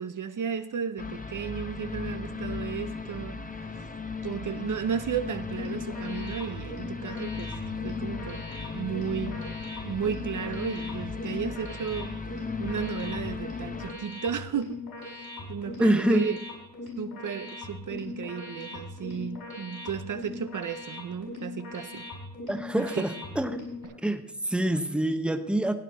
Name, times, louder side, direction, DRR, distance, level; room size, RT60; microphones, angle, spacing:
voice 1, 0.0-3.7 4.2-7.6 7.8-8.4 8.7-9.4 9.8-12.2 12.6-16.4 17.0-22.0 22.9-23.1, right 7 dB, 55° right, 11 dB, 0.6 m, -34 dB
sound 1, 1.0-13.9, left 4 dB, 20° left, 0.9 m, -36 dB
sound 2, 5.4-23.9, left 2 dB, 75° left, 5.1 m, -40 dB
voice 2, 15.8-16.2 22.5-23.5 24.0-25.7, right 1 dB, 5° right, 8 dB, 0.9 m, -26 dB
16.0 x 9.0 x 4.3 m, 0.89 s
wide cardioid pair, 90°, 37 cm